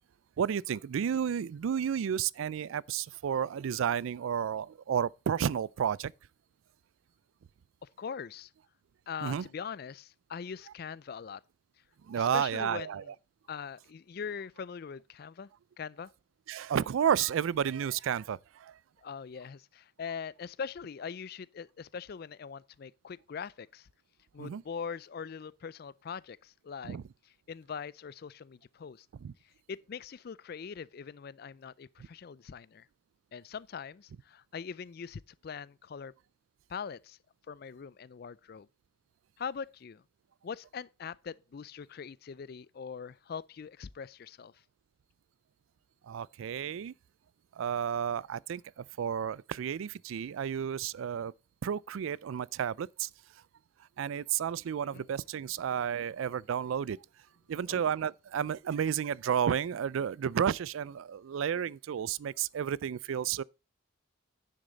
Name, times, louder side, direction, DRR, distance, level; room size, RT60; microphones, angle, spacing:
voice 1, 0.4-6.1 9.2-9.5 12.1-13.0 16.5-18.8 24.4-24.6 26.8-27.0 29.2-29.3 46.0-46.9 47.6-51.3 51.6-53.1 54.0-57.0 57.5-63.4, right 8 dB, 80° right, 0.3 m, -32 dB
voice 2, 7.8-8.5 9.1-11.4 12.1-13.1 13.5-15.5 15.8-16.1 19.0-23.9 24.3-27.0 27.5-29.1 29.7-32.9 33.3-36.1 36.7-37.2 37.5-38.7 39.4-40.0 40.4-44.5 54.9-55.0 57.7-57.9, left 6 dB, 50° left, 0.4 m, -42 dB
10.0 x 6.6 x 3.9 m
head